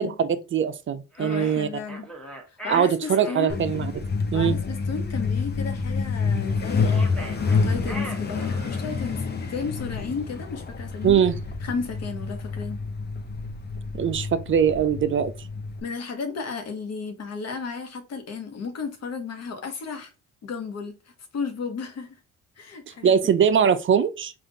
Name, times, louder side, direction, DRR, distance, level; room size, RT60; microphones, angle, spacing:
voice 1, 0.0-1.7 2.7-3.9 4.3-4.6 11.0-11.3 13.9-15.3 23.0-24.3, right 8 dB, 40° right, 0.4 m, -22 dB
sound 1, 1.1-3.6 6.8-8.9, right 1 dB, 5° left, 1.1 m, -39 dB
voice 2, 1.2-2.1 2.5-3.6 4.3-9.2 9.5-11.2 11.6-12.8 15.8-20.1 20.4-22.2 22.6-23.3, left 5 dB, 55° left, 1.0 m, -34 dB
Truck, 3.5-15.8, left 4 dB, 35° left, 0.7 m, -28 dB
3.6 x 2.5 x 3.8 m
cardioid pair, 90°, 30 cm